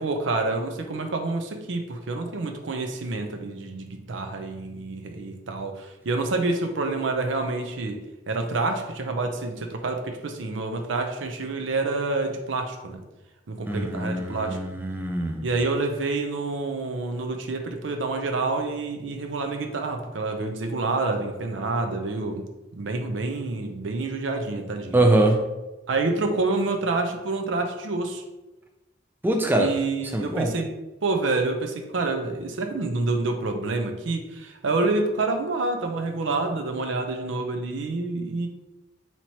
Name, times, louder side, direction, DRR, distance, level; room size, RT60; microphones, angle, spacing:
voice 1, 0.0-8.0 8.3-13.0 13.5-14.6 15.4-22.5 22.8-25.0 25.9-28.2 29.5-30.7 31.0-38.5, right 3 dB, 75° right, 5 dB, 0.5 m, -28 dB
voice 2, 13.7-15.5 24.9-25.4 29.2-29.7 30.1-30.5, right 2 dB, 10° right, 3 dB, 0.3 m, -23 dB
4.5 x 2.9 x 2.8 m, 1.1 s
head